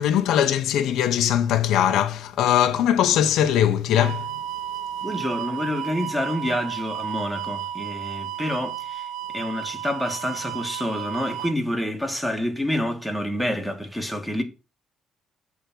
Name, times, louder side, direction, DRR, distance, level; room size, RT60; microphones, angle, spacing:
voice 1, 0.0-4.3, left 10 dB, 85° left, 0.6 m, -21 dB
sound 1, 3.9-11.5, right 11 dB, 90° right, 0.4 m, -33 dB
voice 2, 5.0-14.4, left 1 dB, ahead, 1.7 m, -28 dB
8.2 x 3.5 x 6.0 m
cardioid pair, 90°, 0 cm